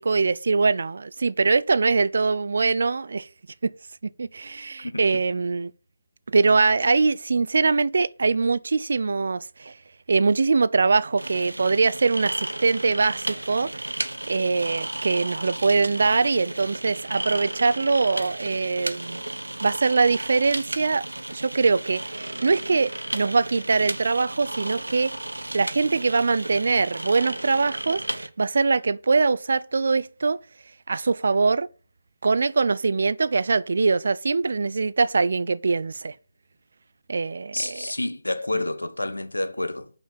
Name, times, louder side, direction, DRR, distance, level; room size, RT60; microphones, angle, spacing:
voice 1, 0.0-3.3 3.6-3.7 4.0-5.7 6.3-9.7 10.1-19.2 19.6-21.1 21.3-25.1 25.5-30.4 30.9-31.7 32.2-36.1 37.1-37.9, right 4 dB, 60° right, 0.4 m, -23 dB
voice 2, 4.8-5.2 37.5-39.9, left 2 dB, 85° left, 1.2 m, -29 dB
sound 1, 11.2-28.3, right 1 dB, 85° right, 0.8 m, -34 dB
5.7 x 5.6 x 6.9 m
figure-of-eight pair, 150°, 0 cm